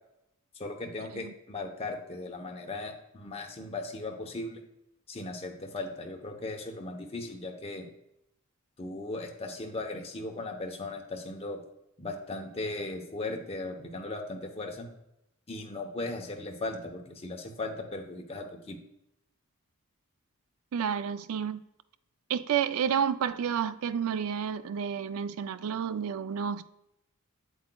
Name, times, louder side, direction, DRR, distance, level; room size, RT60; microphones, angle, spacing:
voice 1, 0.5-4.6 5.1-7.9 8.8-11.6 12.0-14.9 15.5-18.8, left 2 dB, 25° left, 0.8 m, -37 dB
voice 2, 20.7-21.6 22.3-26.8, right 8 dB, 70° right, 0.4 m, -30 dB
7.9 x 7.7 x 2.2 m
head